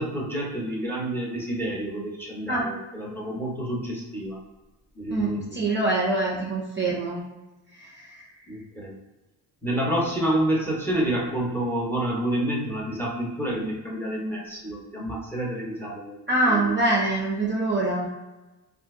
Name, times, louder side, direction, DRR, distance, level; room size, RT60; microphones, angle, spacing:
voice 1, 0.0-4.4 5.0-5.7 8.5-9.0 9.6-16.2 16.5-16.8, right 1 dB, 5° left, -3 dB, 0.8 m, -28 dB
voice 2, 5.1-7.2 7.8-8.2 16.3-18.1, right 2 dB, 25° right, -3 dB, 0.5 m, -24 dB
2.7 x 2.5 x 3.6 m, 1.1 s
cardioid pair, 110°, 42 cm